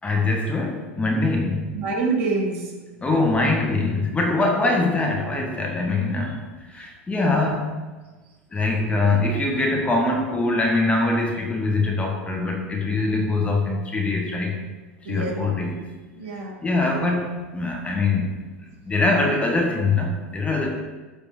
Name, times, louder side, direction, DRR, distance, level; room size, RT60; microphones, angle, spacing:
voice 1, 0.0-1.7 3.0-6.4 6.7-7.8 8.5-14.6 15.0-15.8 16.6-18.3 18.9-20.7, left 2 dB, 20° left, 1 dB, 2.7 m, -23 dB
voice 2, 1.7-2.7 3.1-3.3 4.3-4.5 15.0-15.4 16.1-16.6, right 3 dB, 60° right, -1 dB, 3.4 m, -27 dB
13.5 x 5.1 x 6.5 m, 1.3 s
hypercardioid pair, 85°, 7 cm